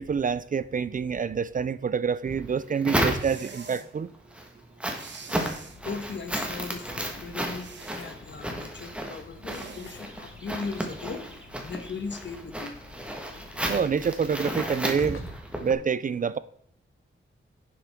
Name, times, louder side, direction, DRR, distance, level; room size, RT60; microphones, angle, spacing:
voice 1, 0.0-4.1 13.7-15.2 15.6-16.4, right 6 dB, 40° right, 0.4 m, -27 dB
sound 1, 2.2-3.7 4.1-15.7, equal, 5° right, 1.4 m, -33 dB
sound 2, 3.1-3.9 4.9-5.8 7.5-8.0 9.4-10.0, right 5 dB, 60° right, 1.1 m, -45 dB
sound 3, 5.5-15.4, left 4 dB, 80° left, 1.1 m, -49 dB
voice 2, 5.8-12.8, left 4 dB, 60° left, 1.2 m, -38 dB
10.5 x 7.7 x 3.6 m
wide cardioid pair, 170°, 21 cm